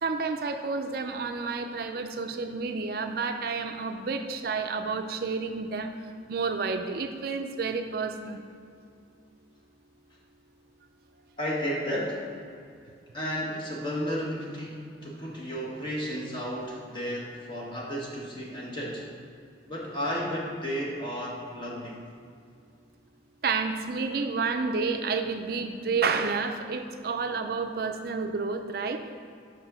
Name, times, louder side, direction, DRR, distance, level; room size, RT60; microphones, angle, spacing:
voice 1, 0.0-8.4 23.4-29.0, right 4 dB, 55° right, 6 dB, 0.4 m, -30 dB
voice 2, 11.4-12.3 13.1-19.1 19.6-22.0, equal, 25° left, -3 dB, 1.4 m, -33 dB
6.1 x 5.8 x 6.0 m, 2.4 s
head